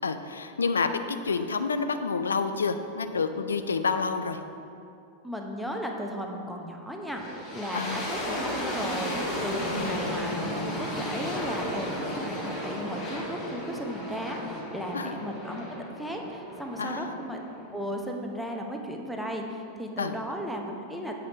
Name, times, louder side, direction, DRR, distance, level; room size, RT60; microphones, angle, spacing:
voice 1, 0.0-4.4 7.7-8.0 9.7-10.1 14.9-15.1 16.8-17.2 20.0-20.2, left 4 dB, 70° left, 9 dB, 0.4 m, -29 dB
voice 2, 5.2-9.2 9.4-17.4 17.7-21.1, equal, ahead, 1 dB, 0.7 m, -35 dB
sound 1, 7.1-18.0, left 1 dB, 30° left, 1.8 m, -34 dB
7.9 x 5.0 x 4.0 m, 2.6 s
figure-of-eight pair, 90°, 0 cm